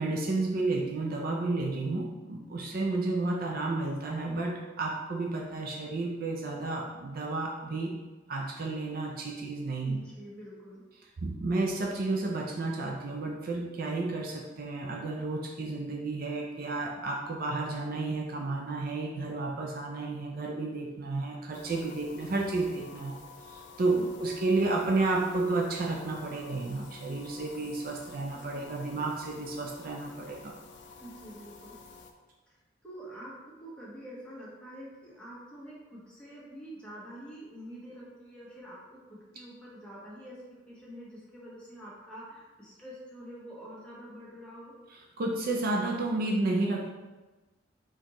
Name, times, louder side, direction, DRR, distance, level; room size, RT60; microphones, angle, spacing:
voice 1, 0.0-8.0 8.3-10.0 11.2-23.2 23.5-30.5 45.2-46.9, right 2 dB, 50° right, 0 dB, 0.4 m, -31 dB
voice 2, 9.8-10.8 23.9-24.1 31.0-31.8 32.5-32.6 32.8-33.3 33.6-40.4 40.7-44.7, equal, 5° left, -7 dB, 1.2 m, -46 dB
sound 1, 21.5-32.1, left 4 dB, 60° left, 0.4 m, -50 dB
4.3 x 3.7 x 3.0 m, 1.2 s
head